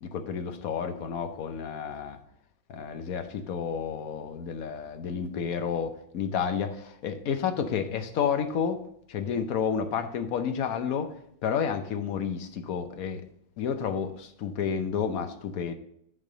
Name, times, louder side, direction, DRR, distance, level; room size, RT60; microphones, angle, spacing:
voice 1, 0.0-2.2 2.7-8.8 9.1-11.1 11.4-13.2 13.6-15.7, left 7 dB, 60° left, 8 dB, 1.0 m, -30 dB
9.9 x 3.5 x 6.6 m, 0.70 s
omnidirectional pair, 2.1 m